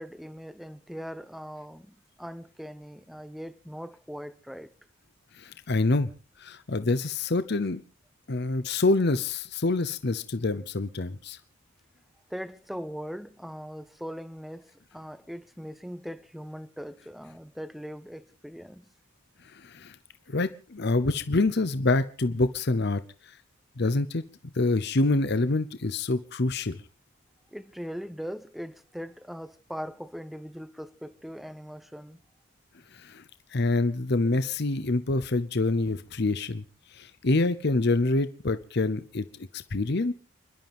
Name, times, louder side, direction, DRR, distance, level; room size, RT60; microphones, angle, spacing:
voice 1, 0.0-4.7 12.3-18.9 27.5-32.2, equal, ahead, 0.7 m, -40 dB
voice 2, 5.4-6.1 6.4-7.8 8.3-11.4 19.5-20.0 20.3-23.0 23.8-24.2 24.5-26.8 32.9-33.2 33.5-36.6 36.9-39.2 39.5-40.1, left 2 dB, 55° left, 0.8 m, -26 dB
29.5 x 12.0 x 3.5 m
head